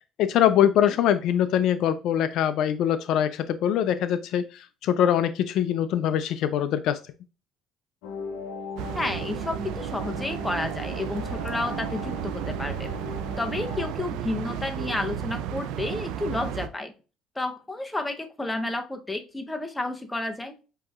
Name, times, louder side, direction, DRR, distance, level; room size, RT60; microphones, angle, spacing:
voice 1, 0.2-7.0, left 10 dB, 65° left, 12 dB, 0.3 m, -23 dB
sound 1, 8.0-13.9, left 2 dB, 85° left, 0.8 m, -38 dB
sound 2, 8.8-16.7, right 9 dB, 75° right, 0.4 m, -33 dB
voice 2, 8.9-12.9 13.4-16.9 17.4-20.5, left 2 dB, 10° left, 5 dB, 0.7 m, -31 dB
7.6 x 2.7 x 2.3 m, 0.33 s
supercardioid pair, 95°, 0 cm